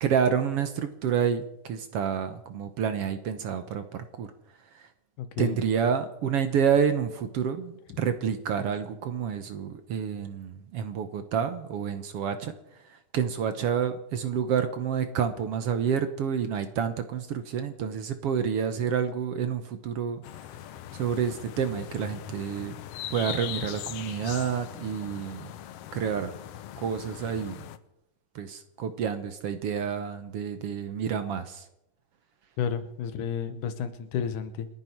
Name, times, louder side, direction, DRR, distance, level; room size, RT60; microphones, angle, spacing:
voice 1, 0.0-4.3 4.7-4.9 5.4-12.5 12.9-20.2 20.9-22.7 23.1-25.5 25.9-26.3 26.8-27.7 28.3-31.6, right 7 dB, 65° right, 9 dB, 1.7 m, -29 dB
voice 2, 5.2-5.6 32.6-34.7, left 8 dB, 90° left, 10 dB, 2.7 m, -31 dB
sound 1, 20.2-27.8, left 12 dB, 75° left, 1.5 m, -40 dB
29.5 x 9.8 x 4.6 m, 0.83 s
omnidirectional pair, 3.5 m